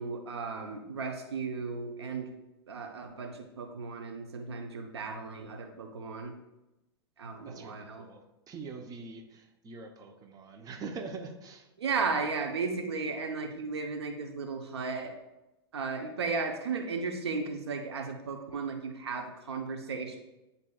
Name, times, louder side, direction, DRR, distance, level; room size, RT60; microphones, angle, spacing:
voice 1, 0.0-2.3 2.7-6.3 7.2-8.1 11.8-15.1 15.7-20.2, right 4 dB, 90° right, 4 dB, 0.9 m, -35 dB
voice 2, 7.4-11.7, right 4 dB, 25° right, 4 dB, 0.8 m, -44 dB
9.8 x 4.1 x 2.3 m, 0.96 s
hypercardioid pair, 110°, 13 cm